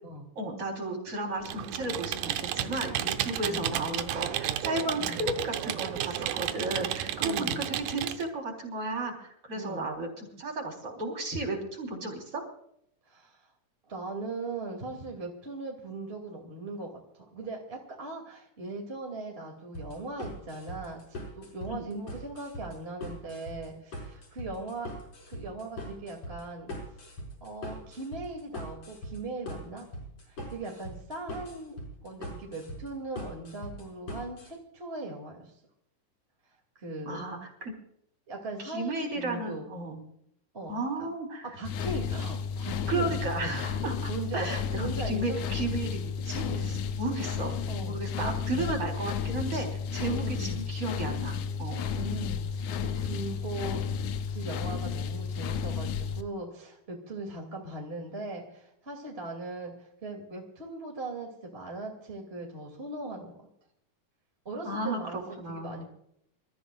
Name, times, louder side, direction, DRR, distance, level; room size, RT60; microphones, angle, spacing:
voice 1, 0.4-12.4 21.7-21.9 37.1-37.7 38.6-40.0 40.7-41.5 42.9-47.5 47.9-51.8 64.6-65.0 65.4-65.8, right 2 dB, 45° right, 1 dB, 4.7 m, -34 dB
Computer keyboard, 1.4-8.2, right 11 dB, 75° right, 2.3 m, -32 dB
voice 2, 7.2-7.6 9.5-9.9 13.1-13.4 13.9-16.9 17.3-24.9 25.3-26.8 27.4-29.9 30.3-35.5 36.8-37.2 38.3-39.7 40.5-41.1 41.5-43.1 43.4-43.6 44.1-44.5 44.8-45.4 46.4-46.7 47.7-48.8 50.2-50.6 51.9-53.8 54.3-63.3 64.4-65.8, right 2 dB, 20° right, 0 dB, 2.4 m, -39 dB
sound 1, 19.7-34.5, equal, 55° left, 6.2 m, -41 dB
sound 2, 41.6-56.2, left 6 dB, 75° left, 2.2 m, -32 dB
28.5 x 14.0 x 2.4 m, 0.72 s
omnidirectional pair, 3.7 m